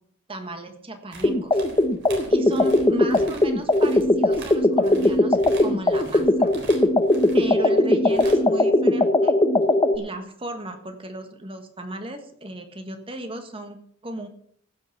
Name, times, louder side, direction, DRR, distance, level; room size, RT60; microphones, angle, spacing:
voice 1, 0.3-1.6 2.3-6.5 7.3-9.4 9.9-14.3, right 1 dB, 25° right, 7 dB, 1.4 m, -35 dB
sound 1, 1.1-7.5 8.1-8.6 9.6-9.7, right 2 dB, 55° right, 3.8 m, -43 dB
sound 2, 1.2-10.0, left 1 dB, 20° left, 0.8 m, -19 dB
15.5 x 6.6 x 6.7 m, 0.66 s
head